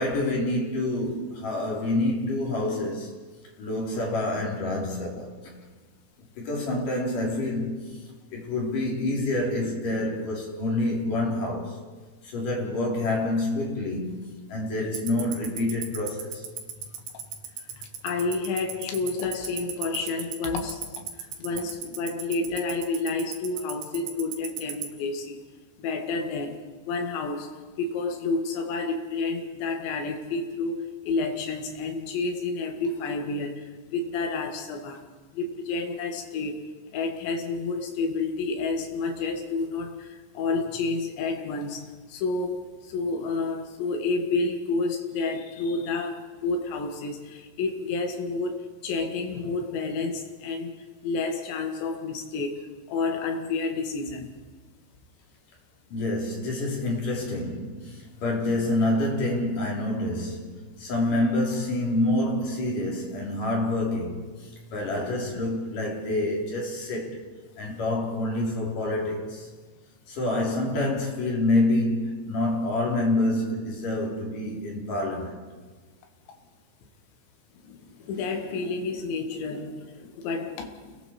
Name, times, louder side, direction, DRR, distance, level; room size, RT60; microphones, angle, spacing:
voice 1, 0.0-3.1 3.6-5.6 6.4-8.0 8.3-11.8 12.2-16.4 55.9-60.5 60.8-64.3 64.7-67.2 67.6-69.5 70.1-75.4, left 2 dB, 50° left, 4.8 m, -27 dB
Tick-tock, 14.9-24.8, right 13 dB, 85° right, 4.0 m, -33 dB
voice 2, 17.7-25.4 25.8-35.1 35.3-36.7 36.9-50.8 51.0-54.3 77.6-81.0, left 3 dB, 85° left, 4.2 m, -30 dB
29.0 x 20.5 x 4.4 m
omnidirectional pair, 5.1 m